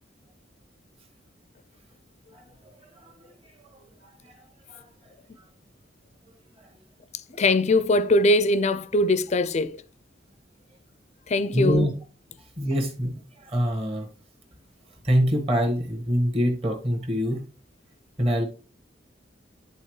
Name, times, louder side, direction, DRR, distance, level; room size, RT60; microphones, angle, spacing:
voice 1, 7.4-9.8 11.3-11.9, left 2 dB, 35° left, 0.5 m, -21 dB
voice 2, 11.5-11.9 12.6-14.1 15.0-17.4 18.2-18.4, equal, 30° right, 1.5 m, -24 dB
10.0 x 4.0 x 3.2 m
head